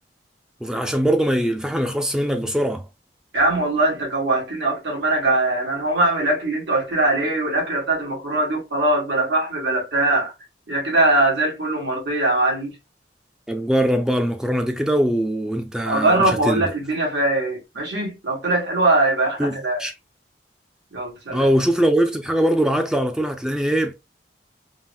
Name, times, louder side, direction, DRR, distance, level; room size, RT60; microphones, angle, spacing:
voice 1, 0.6-2.8 13.5-16.6 19.4-19.9 21.3-23.9, equal, 5° right, 0.3 m, -21 dB
voice 2, 3.3-10.3 10.7-12.7 15.8-19.8 20.9-21.5, right 2 dB, 85° right, 1.6 m, -21 dB
3.8 x 2.1 x 2.6 m
head